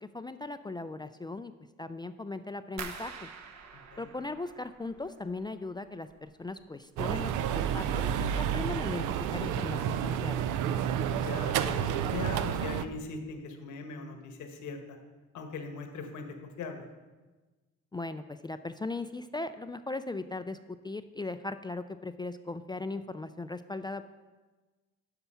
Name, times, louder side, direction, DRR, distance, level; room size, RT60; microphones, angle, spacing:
voice 1, 0.0-1.5 1.8-3.3 4.0-8.1 8.4-10.4 17.9-20.6 20.8-24.0, left 2 dB, 15° left, 10 dB, 0.3 m, -38 dB
sound 1, 2.8-5.6 5.9-6.6 7.0-7.4 7.8-8.0, right 6 dB, 65° right, 1.0 m, -46 dB
sound 2, 7.0-12.8, right 9 dB, 85° right, 0.5 m, -30 dB
voice 2, 11.1-15.0 15.3-16.8, left 4 dB, 75° left, 5 dB, 1.4 m, -40 dB
9.4 x 5.9 x 5.6 m, 1.2 s
cardioid pair, 90°, 30 cm